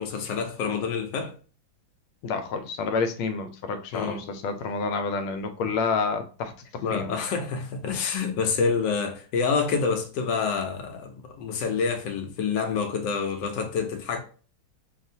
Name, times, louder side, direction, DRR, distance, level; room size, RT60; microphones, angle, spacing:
voice 1, 0.0-1.3 3.9-4.2 5.6-5.7 6.8-14.2, left 5 dB, 70° left, 1.2 m, -27 dB
voice 2, 2.2-7.2, left 4 dB, 90° left, 1.5 m, -29 dB
6.0 x 2.4 x 2.7 m
omnidirectional pair, 2.3 m